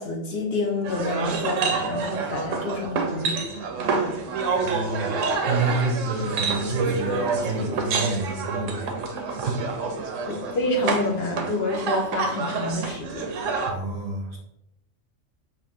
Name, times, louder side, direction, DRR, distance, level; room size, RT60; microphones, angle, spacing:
voice 1, 0.0-3.4 10.2-13.4, left 2 dB, 60° left, 1 dB, 0.8 m, -28 dB
sound 1, 0.8-13.7, right 4 dB, 85° right, 1.0 m, -28 dB
voice 2, 4.6-9.6 13.7-14.4, right 2 dB, 55° right, 0 dB, 0.7 m, -29 dB
2.9 x 2.5 x 3.5 m, 0.82 s
omnidirectional pair, 1.3 m